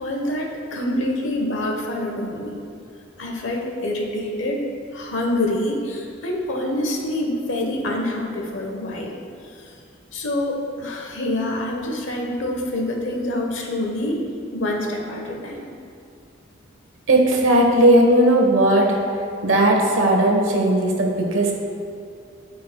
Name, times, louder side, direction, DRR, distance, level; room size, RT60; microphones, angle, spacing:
voice 1, 0.0-2.6 3.2-4.6 4.9-9.1 10.1-14.2 14.5-15.7, left 1 dB, 70° left, 1 dB, 1.0 m, -26 dB
voice 2, 17.1-19.0 19.4-21.5, right 1 dB, 90° right, 0 dB, 1.1 m, -17 dB
13.0 x 4.6 x 2.3 m, 2.5 s
head